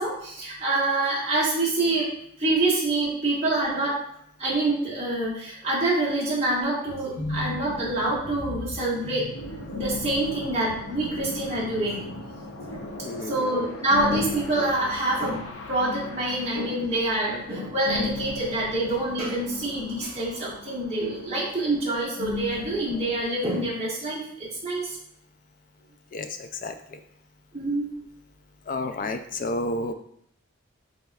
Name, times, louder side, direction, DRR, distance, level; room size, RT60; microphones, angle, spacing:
voice 1, 0.0-2.1 2.4-4.0 4.4-9.3 9.7-12.1 12.6-12.8 13.2-24.9 27.5-27.9, right 2 dB, 30° right, -7 dB, 1.6 m, -26 dB
sound 1, 6.9-23.2, left 3 dB, 75° left, 0.7 m, -37 dB
voice 2, 13.0-13.5 26.1-27.0 28.7-29.9, left 2 dB, 40° left, 8 dB, 0.4 m, -31 dB
5.3 x 3.8 x 2.3 m, 0.68 s
head